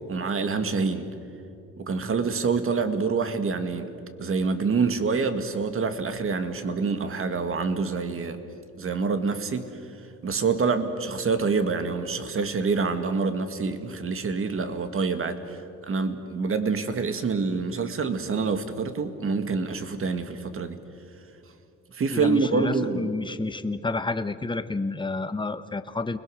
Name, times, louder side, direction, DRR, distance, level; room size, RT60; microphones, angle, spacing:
voice 1, 0.1-1.1 1.8-3.9 4.2-8.4 8.8-9.7 10.2-20.8 21.9-23.1, right 4 dB, 45° right, 9 dB, 2.0 m, -26 dB
voice 2, 22.1-26.2, left 3 dB, 15° left, 11 dB, 1.1 m, -30 dB
29.5 x 21.5 x 6.5 m, 2.6 s
cardioid pair, 90°, 30 cm